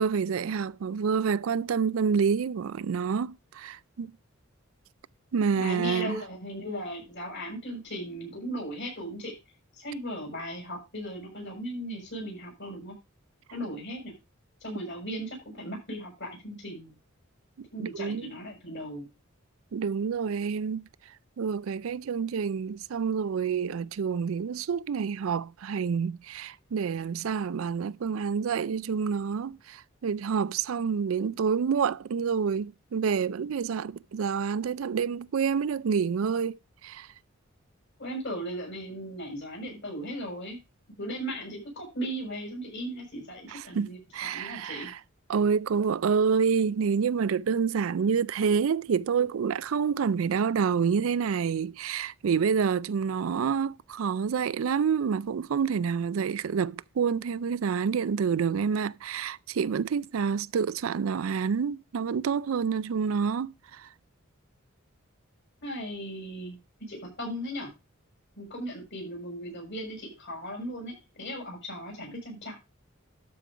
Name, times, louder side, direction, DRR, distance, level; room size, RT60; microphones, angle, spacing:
voice 1, 0.0-4.1 5.3-6.2 17.6-18.3 19.7-20.9 21.4-37.1 43.5-45.0 45.3-63.9, right 6 dB, 85° right, 0.4 m, -28 dB
voice 2, 5.6-9.3 9.7-12.9 13.5-14.1 14.6-16.9 17.7-19.1 38.0-40.6 41.0-44.9 65.6-66.6 66.9-67.7 68.4-72.6, equal, 60° left, 6.6 m, -37 dB
12.5 x 5.3 x 4.8 m
head